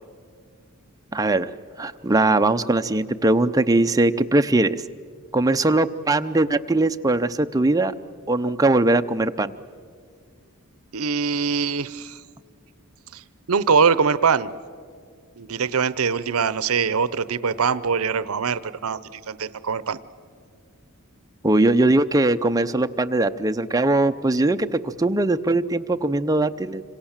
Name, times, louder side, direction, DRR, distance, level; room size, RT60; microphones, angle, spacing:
voice 1, 1.1-1.5 1.8-4.8 5.3-7.9 8.3-9.5 21.4-26.8, right 2 dB, 15° right, 8 dB, 0.6 m, -20 dB
voice 2, 10.9-12.2 13.1-13.2 13.5-14.5 15.4-20.0, right 5 dB, 70° right, 17 dB, 0.7 m, -23 dB
26.5 x 25.5 x 7.3 m, 2.1 s
head